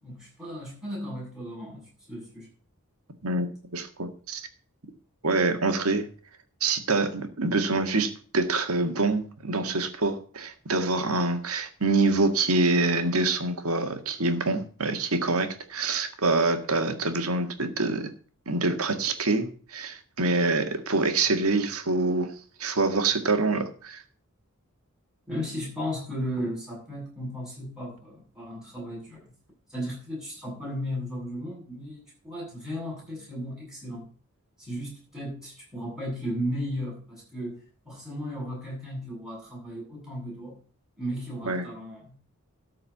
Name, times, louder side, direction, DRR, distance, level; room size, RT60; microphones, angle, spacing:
voice 1, 0.0-2.5 25.3-29.3 29.7-34.1 34.6-37.6 37.8-40.6 41.0-42.2, equal, 5° right, -3 dB, 7.8 m, -35 dB
voice 2, 3.7-4.4 5.2-6.1 6.6-18.1 18.5-22.3 22.6-24.0 41.5-41.7, right 3 dB, 75° right, 7 dB, 1.8 m, -26 dB
13.0 x 4.9 x 8.4 m, 0.44 s
head